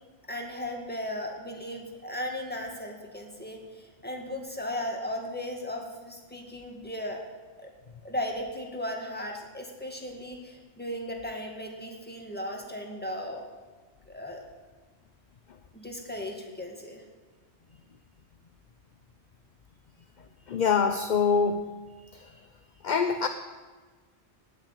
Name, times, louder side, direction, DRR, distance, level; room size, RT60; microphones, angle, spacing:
voice 1, 0.3-7.2 7.6-7.7 8.0-13.5 14.1-14.4 15.7-17.0, left 1 dB, 10° left, 1 dB, 2.0 m, -36 dB
voice 2, 20.5-21.7 22.1-22.3 22.8-23.3, left 5 dB, 50° left, 8 dB, 0.7 m, -24 dB
18.5 x 6.6 x 8.1 m, 1.4 s
omnidirectional pair, 1.1 m